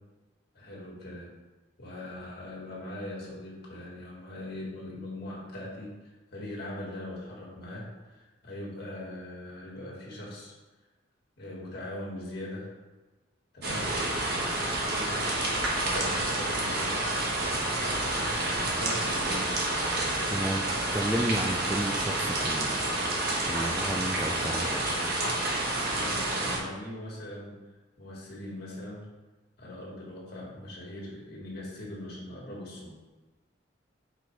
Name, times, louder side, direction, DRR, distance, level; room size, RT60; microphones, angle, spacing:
voice 1, 0.5-1.3 1.8-10.5 11.4-12.7 13.5-13.9 14.6-15.5 15.9-17.2 18.0-19.6 25.9-27.6 28.0-29.1 29.6-32.9, left 1 dB, 55° left, -4 dB, 1.8 m, -41 dB
sound 1, 13.6-26.6, right 2 dB, 55° right, 1.1 m, -29 dB
voice 2, 20.3-20.7 20.9-22.8 23.4-24.9, right 1 dB, 10° right, 1 dB, 0.3 m, -32 dB
4.9 x 4.2 x 4.6 m, 1.2 s
head